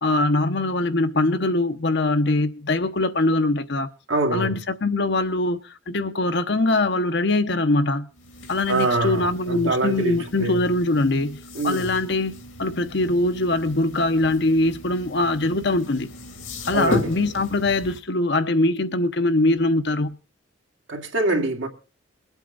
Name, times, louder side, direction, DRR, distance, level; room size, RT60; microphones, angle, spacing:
voice 1, 0.0-3.9 4.3-8.1 8.5-11.4 11.6-12.3 12.6-16.1 16.7-20.2, left 2 dB, 55° left, 0.8 m, -22 dB
voice 2, 4.1-4.5 8.7-10.7 11.5-12.0 16.7-17.1 20.9-21.7, right 2 dB, 70° right, 2.2 m, -24 dB
sound 1, 8.1-18.0, left 2 dB, 80° left, 2.5 m, -36 dB
22.5 x 8.2 x 3.9 m
head